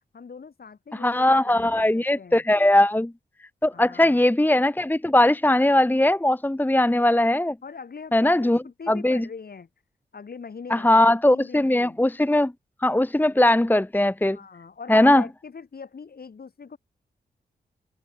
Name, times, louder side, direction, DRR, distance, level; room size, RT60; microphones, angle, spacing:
voice 1, 0.1-2.4 3.7-4.2 7.6-9.7 10.1-12.0 14.3-16.8, left 5 dB, 60° left, 7.4 m, -42 dB
voice 2, 0.9-3.1 3.6-7.5 8.1-8.6 8.9-9.3 10.7-12.5 12.8-14.4 14.9-15.2, left 1 dB, 10° left, 1.1 m, -20 dB
cardioid pair, 45°, 18 cm